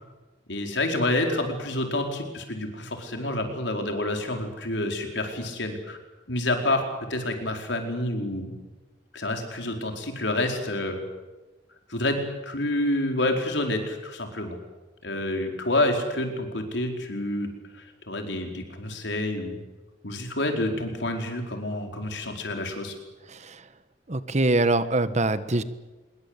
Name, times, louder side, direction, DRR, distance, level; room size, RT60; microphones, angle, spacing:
voice 1, 0.5-6.0 6.3-6.8 7.1-8.5 9.1-11.0 11.9-14.6 15.0-19.6 20.0-22.9, left 1 dB, 75° left, 4 dB, 4.8 m, -28 dB
voice 2, 24.1-25.6, right 2 dB, 40° right, 13 dB, 1.3 m, -23 dB
25.5 x 22.5 x 8.3 m, 1.2 s
head